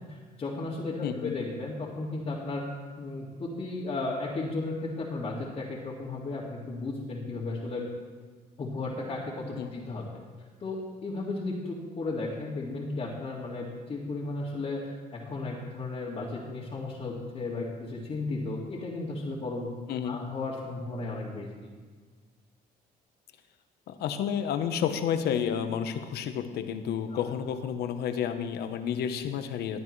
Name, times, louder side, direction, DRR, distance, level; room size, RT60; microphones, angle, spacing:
voice 1, 0.1-2.6 3.0-7.9 8.6-10.0 10.6-19.7 20.0-21.7, left 3 dB, 35° left, -6 dB, 2.0 m, -34 dB
voice 2, 1.0-1.4 9.6-9.7 19.9-20.2 23.9-29.8, left 8 dB, 75° left, 9 dB, 1.0 m, -30 dB
16.5 x 9.8 x 3.2 m, 1.5 s
cardioid pair, 110°, 17 cm